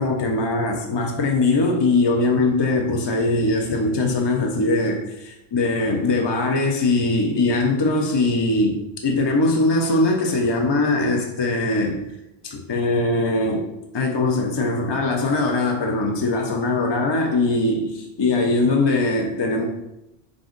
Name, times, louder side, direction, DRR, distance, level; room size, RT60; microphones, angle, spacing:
voice 1, 0.0-12.0 12.4-13.7 13.9-19.7, left 2 dB, 45° left, 1 dB, 0.3 m, -21 dB
4.9 x 2.5 x 3.7 m, 0.87 s
omnidirectional pair, 1.1 m